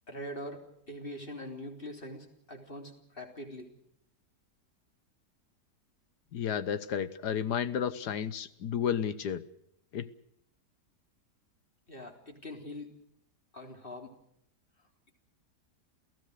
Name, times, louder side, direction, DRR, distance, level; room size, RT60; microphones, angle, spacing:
voice 1, 0.1-3.7 11.9-12.9 13.5-14.1, left 1 dB, 30° left, 3 dB, 3.8 m, -43 dB
voice 2, 6.3-9.4 9.9-10.0, left 8 dB, 80° left, 14 dB, 1.6 m, -32 dB
29.0 x 16.0 x 6.6 m, 0.74 s
omnidirectional pair, 1.7 m